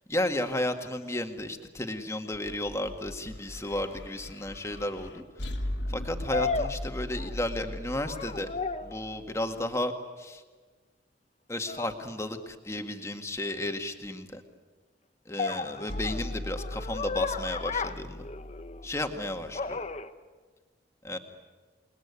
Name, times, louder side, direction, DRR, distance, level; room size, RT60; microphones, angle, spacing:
voice 1, 0.1-5.5 5.9-8.5 8.8-9.9 10.2-10.4 11.5-14.4 15.3-18.2 18.8-19.8 21.0-21.2, left 1 dB, 15° left, 6 dB, 1.9 m, -33 dB
sound 1, 2.3-9.6 15.9-20.0, left 1 dB, 75° left, 2.4 m, -39 dB
sound 2, 3.9-4.0 6.3-7.6 7.9-9.0 11.7-11.9 15.4-18.9 19.5-20.1, left 4 dB, 35° left, 1.0 m, -34 dB
29.0 x 20.5 x 9.8 m, 1.4 s
head